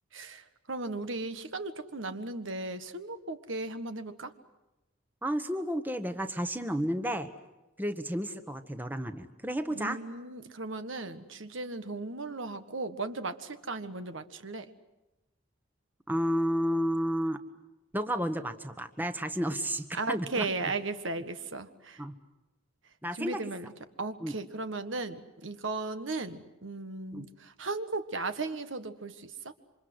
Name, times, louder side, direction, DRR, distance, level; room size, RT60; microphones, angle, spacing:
voice 1, 0.1-4.3 9.7-14.7 19.9-22.0 23.1-23.7 24.0-29.5, right 3 dB, 75° right, 10 dB, 1.6 m, -36 dB
voice 2, 5.2-7.3 7.8-10.0 16.1-17.4 17.9-20.5 22.0-22.1 23.0-23.4 24.2-24.4 27.1-27.3, equal, 10° right, 9 dB, 1.2 m, -31 dB
28.0 x 25.5 x 7.9 m, 0.98 s
head